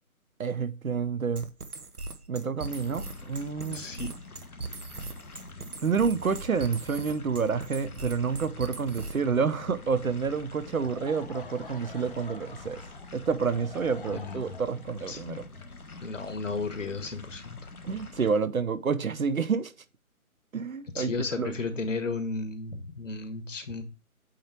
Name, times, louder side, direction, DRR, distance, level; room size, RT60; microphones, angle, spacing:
voice 1, 0.4-1.5 2.3-3.9 5.8-12.8 13.1-15.5 17.8-19.7 20.5-21.1 21.4-21.5, right 5 dB, 70° right, 0.8 m, -29 dB
sound 1, 1.4-9.3, right 3 dB, 85° right, 1.1 m, -40 dB
sound 2, 2.6-18.3, left 3 dB, 75° left, 1.3 m, -46 dB
voice 2, 3.7-4.1 14.1-14.6 15.1-15.4 16.0-17.6 20.9-23.8, left 3 dB, 60° left, 1.3 m, -34 dB
Laughter / Crowd, 10.6-16.6, left 4 dB, 40° left, 0.8 m, -48 dB
8.6 x 3.0 x 4.6 m
figure-of-eight pair, 150°, 44 cm